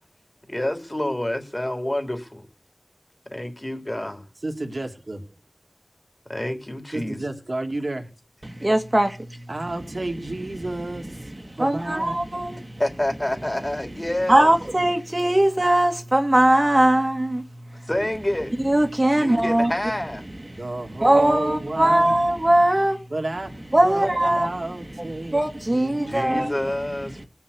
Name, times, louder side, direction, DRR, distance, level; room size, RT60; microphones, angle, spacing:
voice 1, 0.5-2.4 3.3-4.2 6.3-7.2 12.8-14.5 17.9-18.5 19.1-20.3 26.1-27.3, left 1 dB, 30° left, 3.3 m, -28 dB
voice 2, 4.4-5.2 6.9-8.1 9.5-11.3 11.6-12.3 20.5-22.2 23.1-23.5 23.8-25.4 25.7-26.6, right 2 dB, 70° right, 2.6 m, -31 dB
voice 3, 8.5-9.2 11.5-12.7 14.3-17.4 18.6-19.7 21.0-23.0 23.7-24.5 25.0-25.1 25.3-26.5, right 1 dB, 40° right, 1.8 m, -20 dB
19.5 x 7.2 x 8.5 m
wide cardioid pair, 50°, 0 cm